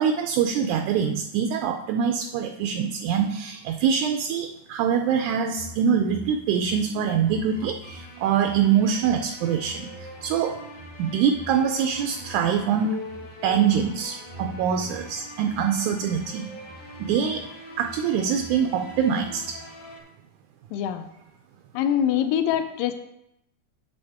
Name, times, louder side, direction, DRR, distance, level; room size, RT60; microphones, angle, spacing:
voice 1, 0.0-10.6 11.0-13.0 13.4-16.5 17.0-17.5 17.8-19.6, right 7 dB, 80° right, 5 dB, 1.8 m, -24 dB
sound 1, 5.6-20.0, left 1 dB, 55° left, 2.0 m, -42 dB
voice 2, 20.7-21.1 21.7-22.9, left 10 dB, 90° left, 9 dB, 2.3 m, -24 dB
7.9 x 7.7 x 3.6 m, 0.82 s
omnidirectional pair, 3.9 m